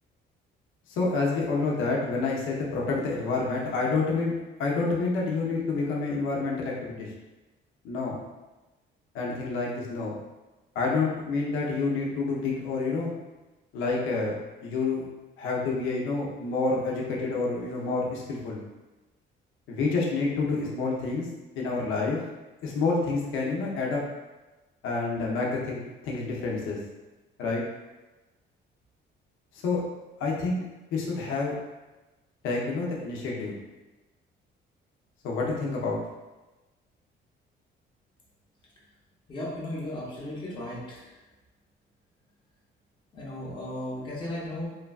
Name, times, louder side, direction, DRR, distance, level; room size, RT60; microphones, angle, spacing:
voice 1, 0.9-7.1 7.8-8.2 9.1-10.1 10.7-13.1 13.7-15.0 15.4-18.6 19.7-21.3 21.6-22.2 22.6-24.0 24.8-26.8 27.4-27.6 29.6-29.8 30.2-30.6 30.9-31.5 32.4-33.6 35.2-36.0, left 3 dB, 85° left, -2 dB, 0.6 m, -28 dB
voice 2, 39.3-41.0 43.1-44.7, left 1 dB, 25° left, -6 dB, 0.6 m, -35 dB
3.2 x 2.2 x 2.3 m, 1.1 s
cardioid pair, 175°, 20 cm